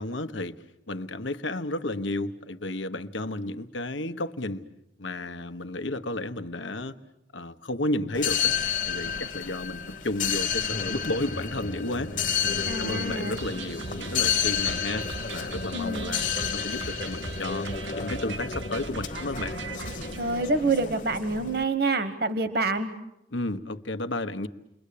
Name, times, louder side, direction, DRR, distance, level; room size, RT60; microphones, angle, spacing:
voice 1, 0.0-4.7 5.0-6.9 7.3-8.5 8.8-17.7 17.9-19.6 23.3-24.5, left 2 dB, 85° left, 1.2 m, -32 dB
sound 1, 8.1-21.6, left 7 dB, 45° left, 1.2 m, -31 dB
voice 2, 12.7-13.4 15.7-16.1 20.2-22.9, right 3 dB, 55° right, 1.3 m, -27 dB
sound 2, 13.4-20.2, right 5 dB, 75° right, 1.0 m, -40 dB
29.5 x 22.5 x 8.6 m
head